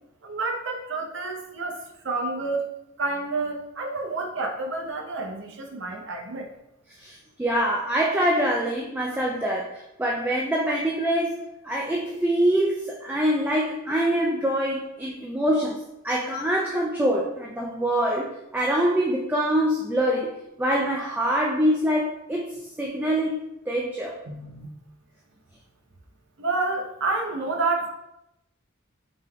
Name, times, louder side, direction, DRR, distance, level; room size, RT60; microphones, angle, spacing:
voice 1, 0.2-1.8 2.0-2.7 3.0-6.5 24.3-24.7 26.4-27.9, right 3 dB, 60° right, 2 dB, 0.7 m, -29 dB
voice 2, 7.0-11.4 11.6-23.4 23.7-24.2, equal, 10° right, -2 dB, 0.3 m, -25 dB
5.0 x 3.6 x 2.2 m, 0.86 s
head